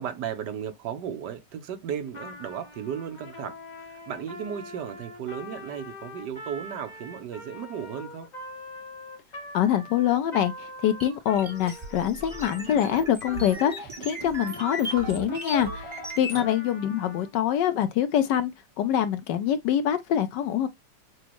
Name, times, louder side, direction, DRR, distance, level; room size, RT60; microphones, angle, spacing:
voice 1, 0.0-8.3 16.3-16.5, right 8 dB, 70° right, 1.3 m, -35 dB
Trumpet, 2.1-13.8 14.3-17.3, left 1 dB, 30° left, 0.9 m, -43 dB
voice 2, 9.5-18.5 18.8-20.7, left 10 dB, 75° left, 1.2 m, -25 dB
sound 1, 11.0-16.5, right 1 dB, 20° right, 1.2 m, -37 dB
6.2 x 2.3 x 2.9 m
omnidirectional pair, 2.0 m